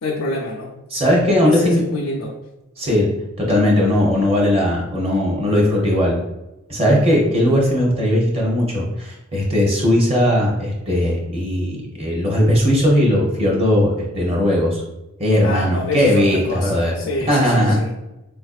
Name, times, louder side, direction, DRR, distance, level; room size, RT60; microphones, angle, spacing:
voice 1, 0.0-0.8 1.4-2.4 15.4-17.9, left 2 dB, 85° left, -4 dB, 0.5 m, -27 dB
voice 2, 0.9-1.8 2.8-3.1 3.4-6.2 6.7-14.8 15.2-16.9 17.3-17.8, left 1 dB, 25° right, -2 dB, 0.7 m, -18 dB
4.1 x 2.5 x 2.4 m, 0.96 s
head